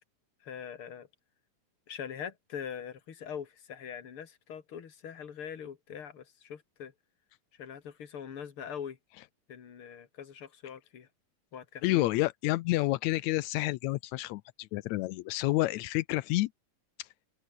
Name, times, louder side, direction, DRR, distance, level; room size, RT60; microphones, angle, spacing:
voice 1, 0.4-1.1 1.9-6.9 7.6-9.0 9.5-11.1 11.5-12.1, left 8 dB, 45° left, 2.7 m, -42 dB
voice 2, 11.8-16.5 17.0-17.1, left 18 dB, 80° left, 1.7 m, -29 dB
omnidirectional pair, 3.7 m